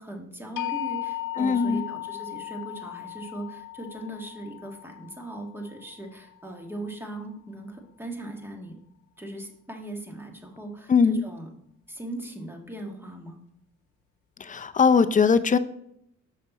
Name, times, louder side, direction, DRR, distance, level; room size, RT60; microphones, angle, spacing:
voice 1, 0.0-8.8 9.2-11.5 11.9-13.4, right 1 dB, 5° right, 2 dB, 1.5 m, -39 dB
sound 1, 0.6-6.5, left 15 dB, 80° left, 0.6 m, -36 dB
voice 2, 1.4-1.9 10.9-11.2 14.4-15.6, left 5 dB, 25° left, 10 dB, 0.5 m, -20 dB
6.5 x 5.8 x 4.0 m, 0.74 s
cardioid pair, 90°, 30 cm